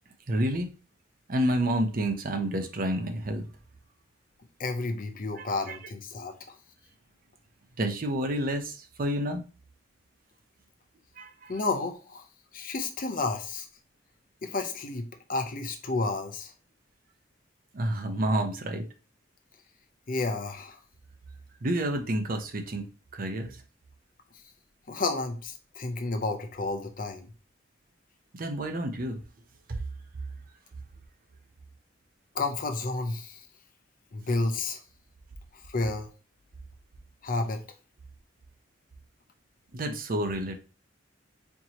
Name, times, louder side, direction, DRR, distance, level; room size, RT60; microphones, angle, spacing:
voice 1, 0.3-0.7 1.3-3.4 5.4-5.8 7.8-9.4 11.2-11.6 17.7-18.8 21.6-22.8 23.1-23.5 28.3-29.2 39.7-40.6, right 1 dB, 45° right, 6 dB, 0.6 m, -29 dB
voice 2, 4.6-6.5 11.5-12.2 12.5-13.7 14.4-16.5 20.1-20.8 24.9-27.2 32.3-33.4 34.1-34.8 35.7-36.1 37.2-37.6, left 3 dB, 45° left, 6 dB, 0.6 m, -31 dB
4.5 x 2.9 x 2.8 m, 0.34 s
head